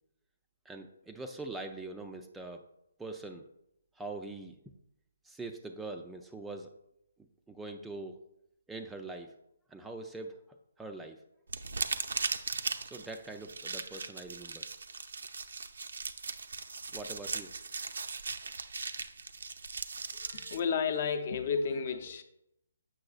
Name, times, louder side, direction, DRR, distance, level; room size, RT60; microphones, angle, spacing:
voice 1, 0.7-2.7 3.0-3.5 3.9-4.6 5.2-6.7 7.2-8.2 8.7-9.4 9.7-10.4 10.8-11.2 12.8-14.7 16.9-17.5, right 2 dB, 5° right, 4 dB, 0.3 m, -43 dB
sound 1, 11.5-20.6, right 4 dB, 75° right, 0.5 m, -38 dB
voice 2, 20.1-22.2, left 6 dB, 45° left, 7 dB, 0.6 m, -32 dB
7.5 x 6.0 x 2.4 m, 0.81 s
hypercardioid pair, 150°, 0 cm